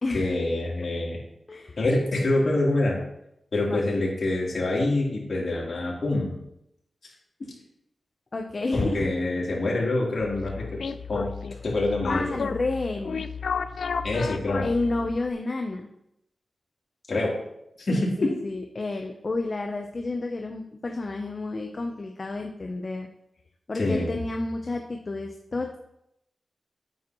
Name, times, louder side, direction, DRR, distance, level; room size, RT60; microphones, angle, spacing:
voice 1, 0.1-1.2 1.8-3.0 3.5-6.3 8.7-10.8 11.1-11.3 11.6-12.2 14.0-14.6 17.1-17.3 17.8-18.3 23.8-24.1, left 2 dB, 65° left, -4 dB, 3.6 m, -25 dB
voice 2, 1.5-1.8 3.7-4.0 8.3-9.1 12.1-13.2 14.6-15.9 17.9-23.1 23.7-25.8, left 2 dB, 50° left, 3 dB, 0.9 m, -30 dB
sound 1, 10.2-15.3, left 5 dB, 80° left, 0.5 m, -33 dB
9.2 x 8.5 x 3.1 m, 0.81 s
cardioid pair, 55°, 0 cm